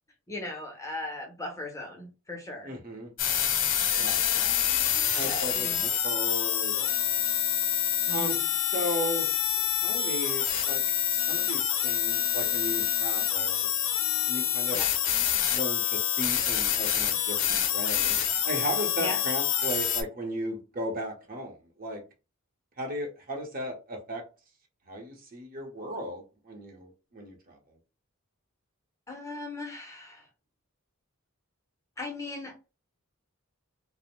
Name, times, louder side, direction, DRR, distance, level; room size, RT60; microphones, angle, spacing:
voice 1, 0.3-2.7 4.3-4.8 5.2-5.9 8.1-8.5 14.7-14.9 19.0-19.2 29.1-30.3 32.0-32.7, left 2 dB, 15° left, 0.6 m, -38 dB
voice 2, 2.6-3.1 3.9-4.2 5.1-7.2 8.1-8.4 8.7-9.3 9.8-10.8 11.1-13.7 14.3-14.8 15.5-18.2 18.4-22.0 22.8-24.3 24.9-27.8, right 1 dB, 40° right, 0.7 m, -36 dB
Bit crushed headphones, 3.2-20.0, left 10 dB, 60° left, 0.5 m, -27 dB
2.5 x 2.0 x 2.9 m
head